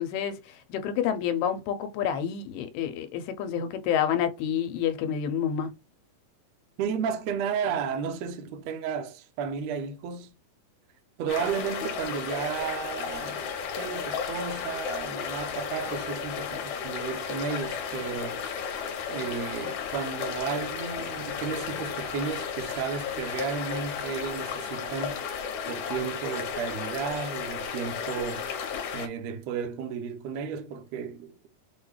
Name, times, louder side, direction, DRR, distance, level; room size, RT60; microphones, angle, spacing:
voice 1, 0.0-5.7, left 9 dB, 85° left, 2.2 m, -29 dB
voice 2, 6.8-10.3 11.2-18.4 19.1-28.5 28.9-31.3, right 6 dB, 75° right, 1.6 m, -33 dB
sound 1, 11.3-29.1, left 7 dB, 70° left, 2.2 m, -34 dB
6.1 x 2.3 x 3.1 m
omnidirectional pair, 3.9 m